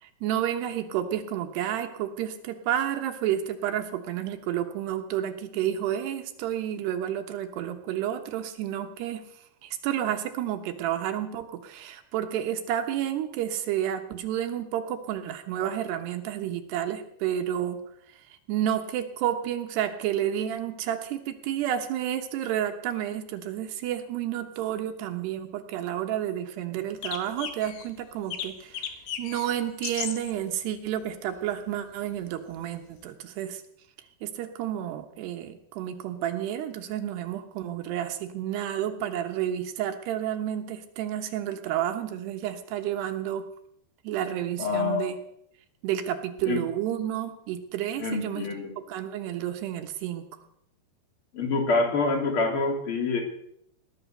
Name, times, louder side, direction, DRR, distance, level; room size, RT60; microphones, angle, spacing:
voice 1, 0.0-17.8 18.1-33.6 34.2-43.4 44.0-45.2 45.8-48.5 48.9-50.2, right 11 dB, 85° right, 6 dB, 3.4 m, -30 dB
sound 1, 27.0-27.9 28.3-29.5 29.8-30.3 31.6-31.7 33.0-33.1, left 8 dB, 65° left, 2.9 m, -35 dB
voice 2, 44.6-45.1 46.5-46.6 48.0-48.7 51.3-53.2, left 3 dB, 35° left, 3 dB, 3.4 m, -26 dB
19.0 x 11.5 x 6.6 m, 0.73 s
omnidirectional pair, 4.7 m